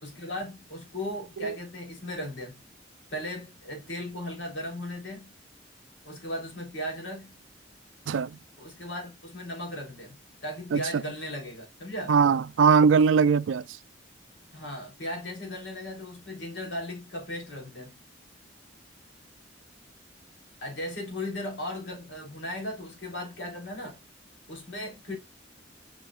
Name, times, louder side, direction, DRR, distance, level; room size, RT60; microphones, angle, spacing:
voice 1, 0.0-2.6 3.1-5.3 6.0-7.4 8.6-10.1 10.4-12.1 14.5-18.0 20.6-24.0 24.5-25.2, left 1 dB, 75° left, 3.4 m, -37 dB
voice 2, 8.1-8.4 10.7-11.0 12.1-13.7, right 6 dB, 85° right, 0.4 m, -21 dB
7.9 x 5.2 x 2.4 m
head